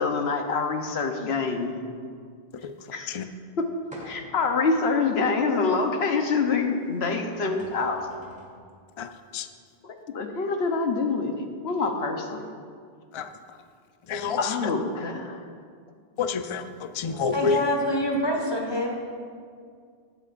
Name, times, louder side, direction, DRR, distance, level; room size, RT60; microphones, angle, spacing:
voice 1, 0.0-1.7 2.9-3.1 3.6-3.7 4.0-8.1 9.8-12.5 14.4-15.4, left 4 dB, 85° left, 4 dB, 1.1 m, -26 dB
voice 2, 2.6-3.2 9.0-9.5 13.1-13.6 14.1-14.7 16.2-17.6, left 5 dB, 50° left, 9 dB, 0.3 m, -29 dB
sound 1, 3.9-4.5 5.1-5.2 7.1-7.2 7.4-8.6, equal, 5° right, 1.3 m, -46 dB
voice 3, 17.3-18.9, left 1 dB, 25° left, 0 dB, 1.4 m, -25 dB
17.0 x 8.4 x 2.5 m, 2.1 s
omnidirectional pair, 1.0 m